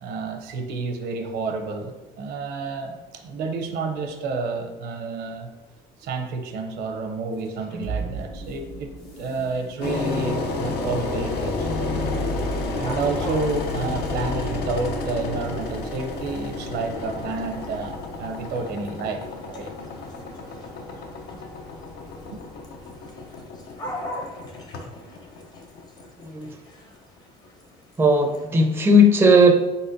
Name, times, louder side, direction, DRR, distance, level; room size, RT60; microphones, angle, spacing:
voice 1, 0.0-5.5 6.0-12.1 12.8-19.7 22.2-22.4, right 4 dB, 75° right, 4 dB, 0.6 m, -30 dB
sound 1, 7.3-17.8, right 3 dB, 90° left, 1.2 m, -40 dB
Engine, 9.8-26.7, left 3 dB, 70° left, 0.6 m, -31 dB
sound 2, 11.8-28.5, equal, 25° left, 0.7 m, -43 dB
voice 2, 26.2-26.6 28.0-29.5, equal, 15° right, 4 dB, 0.4 m, -16 dB
4.1 x 3.9 x 2.6 m, 1.1 s
cardioid pair, 110°, 17 cm